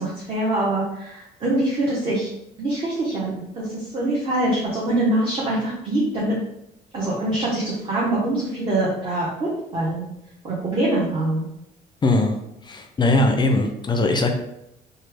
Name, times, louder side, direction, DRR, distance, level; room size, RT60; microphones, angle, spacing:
voice 1, 0.0-2.3 2.6-6.3 6.9-10.0 10.4-11.5, right 1 dB, 30° right, -6 dB, 0.9 m, -24 dB
voice 2, 12.0-12.4 12.6-14.3, left 2 dB, 25° left, 5 dB, 0.4 m, -20 dB
3.1 x 2.2 x 3.3 m, 0.82 s
cardioid pair, 110°, 17 cm